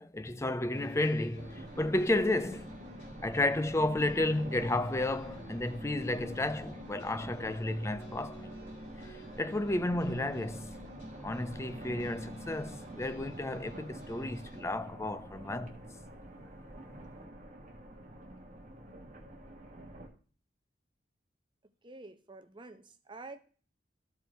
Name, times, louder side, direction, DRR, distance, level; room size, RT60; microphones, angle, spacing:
voice 1, 0.0-2.8 3.2-8.5 9.0-10.7 11.2-15.8, left 2 dB, 15° left, 0.5 m, -32 dB
wild music, 0.7-14.6, left 1 dB, 70° left, 4.2 m, -49 dB
sound 1, 1.3-20.1, right 1 dB, 45° right, 1.5 m, -48 dB
voice 2, 21.8-23.4, right 3 dB, 25° right, 0.7 m, -48 dB
13.5 x 5.1 x 4.4 m
head